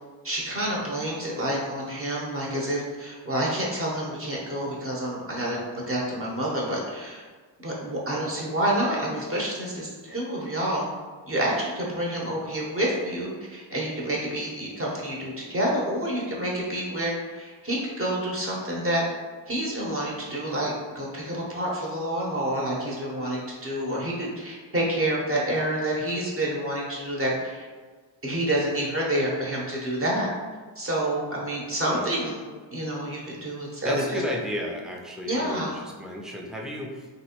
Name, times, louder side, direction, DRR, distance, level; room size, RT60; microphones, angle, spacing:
voice 1, 0.2-7.2 7.6-10.9 11.3-19.0 19.5-27.6 28.2-30.3 30.8-32.4 32.7-34.2 35.2-35.8, right 1 dB, 30° right, -4 dB, 0.9 m, -28 dB
voice 2, 33.8-37.1, left 1 dB, ahead, -1 dB, 0.3 m, -33 dB
3.0 x 2.6 x 2.8 m, 1.4 s
cardioid pair, 90°, 47 cm